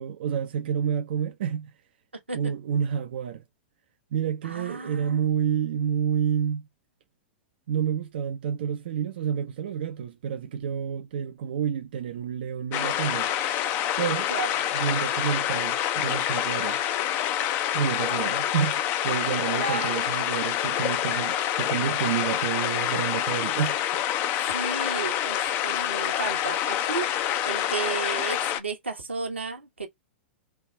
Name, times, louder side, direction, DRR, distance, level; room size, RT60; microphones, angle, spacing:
voice 1, 0.0-1.7 2.3-3.4 4.1-6.7 7.7-13.3 14.0-14.3 14.7-16.8 17.7-23.8, right 8 dB, 60° right, 0.4 m, -29 dB
voice 2, 4.4-5.2 14.3-14.5 18.0-18.4 19.5-20.1 24.5-29.9, right 4 dB, 90° right, 1.0 m, -34 dB
sound 1, 12.7-28.6, left 11 dB, 35° left, 0.5 m, -27 dB
3.3 x 2.4 x 3.2 m
figure-of-eight pair, 105°, 6 cm